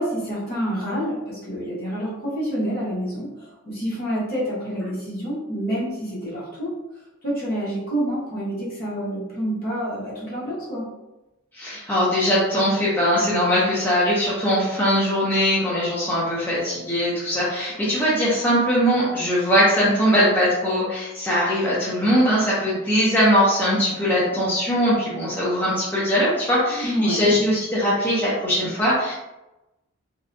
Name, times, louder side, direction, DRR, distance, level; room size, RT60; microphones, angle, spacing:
voice 1, 0.0-6.7 7.2-10.8 26.7-27.4, equal, 40° left, -7 dB, 0.9 m, -28 dB
voice 2, 11.5-29.1, equal, 10° left, -9 dB, 0.4 m, -21 dB
2.6 x 2.1 x 2.5 m, 0.98 s
head